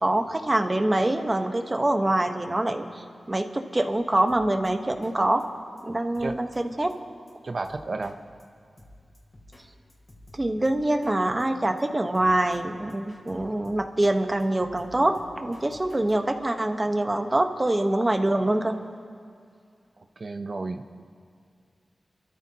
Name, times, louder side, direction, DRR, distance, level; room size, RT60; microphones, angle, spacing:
voice 1, 0.0-5.5 5.8-6.9 10.3-18.7, right 1 dB, 25° right, 6 dB, 1.1 m, -25 dB
Drum kit, 4.3-4.7 5.0-5.1 5.4-5.5 5.8-5.9 6.1-6.6 6.9-7.0 7.3-7.4 7.6-8.1 8.4-8.5 8.8-9.6 9.9-11.1 11.4-11.5 11.8-11.9 12.1-12.6 12.9-14.1 14.4-16.1, left 1 dB, 35° left, 3.0 m, -51 dB
voice 2, 7.4-8.2 20.0-21.0, right 3 dB, 55° right, 6 dB, 0.7 m, -33 dB
28.5 x 13.5 x 2.9 m, 2.3 s
wide cardioid pair, 75°, 0 cm